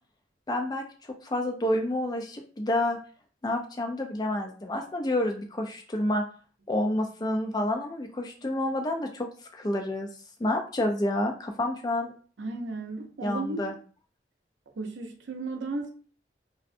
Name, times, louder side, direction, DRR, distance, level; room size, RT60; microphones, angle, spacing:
voice 1, 0.5-3.0 3.4-6.2 6.7-9.3 9.5-10.1 10.4-12.1 13.2-13.7, left 1 dB, 20° left, 4 dB, 0.3 m, -29 dB
voice 2, 12.4-13.7 14.8-15.9, right 3 dB, 85° right, 4 dB, 0.5 m, -34 dB
2.6 x 2.1 x 2.5 m, 0.41 s
head